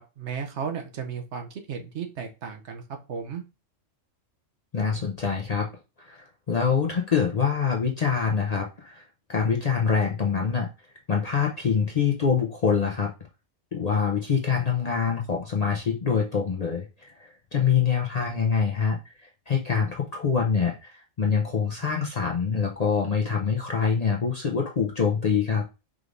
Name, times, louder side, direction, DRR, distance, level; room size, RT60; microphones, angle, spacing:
voice 1, 0.0-2.8 3.1-3.4, right 6 dB, 70° right, 4 dB, 1.0 m, -34 dB
voice 2, 4.7-5.7 6.0-9.0 9.3-10.7 11.1-13.1 13.7-19.0 19.5-25.7, left 6 dB, 45° left, 0 dB, 0.6 m, -25 dB
4.9 x 3.3 x 2.5 m, 0.29 s
omnidirectional pair, 1.3 m